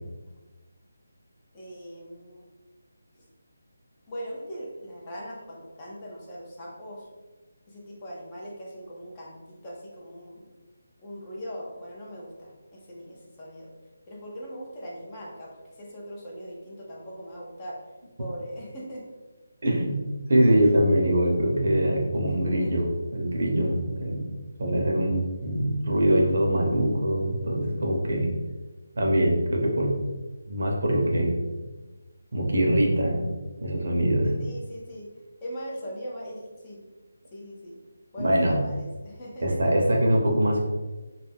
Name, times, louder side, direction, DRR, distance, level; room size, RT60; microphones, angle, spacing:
voice 1, 1.5-2.4 3.1-3.2 4.1-7.1 7.7-10.5 11.0-13.7 14.1-17.8 18.2-19.1 22.3-22.4 22.6-22.7 34.4-35.1 35.4-36.8 37.3-37.8 38.1-39.6, equal, 20° left, -4 dB, 0.5 m, -40 dB
voice 2, 19.6-20.0 20.3-24.3 24.6-28.3 29.0-30.0 30.5-31.4 32.3-33.2 33.6-34.4 38.2-38.6 39.4-40.6, right 1 dB, 60° right, 0 dB, 0.6 m, -23 dB
2.3 x 2.1 x 3.3 m, 1.2 s
figure-of-eight pair, 170°, 0 cm